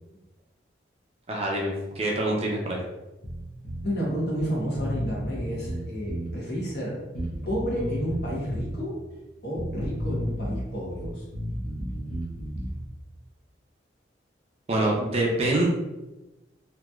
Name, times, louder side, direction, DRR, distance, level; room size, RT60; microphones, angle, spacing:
voice 1, 1.3-2.8 14.7-15.7, right 1 dB, 35° right, -1 dB, 0.5 m, -25 dB
Bass guitar, 3.2-3.9 4.4-4.5 4.7-6.4 7.2-8.8 9.5-10.7 11.0-12.8, equal, 45° left, 0.7 m, -33 dB
voice 2, 3.8-7.0 7.4-9.0 9.4-11.2, equal, 65° left, -5 dB, 1.1 m, -30 dB
3.1 x 2.7 x 2.3 m, 1.0 s
head